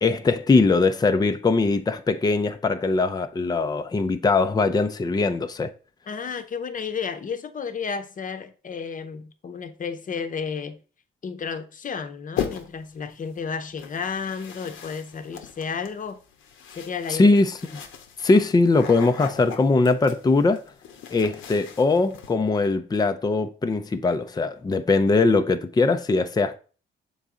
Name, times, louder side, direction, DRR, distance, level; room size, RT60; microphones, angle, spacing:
voice 1, 0.0-5.7 17.1-17.6 18.2-20.6 21.1-26.6, left 3 dB, 20° left, 0.5 m, -21 dB
voice 2, 6.1-10.8 11.2-16.2 16.7-17.4, left 6 dB, 40° left, 0.9 m, -32 dB
sound 1, 12.4-12.9 13.8-22.3, left 8 dB, 80° left, 1.0 m, -38 dB
7.0 x 3.9 x 3.7 m
cardioid pair, 90°, 20 cm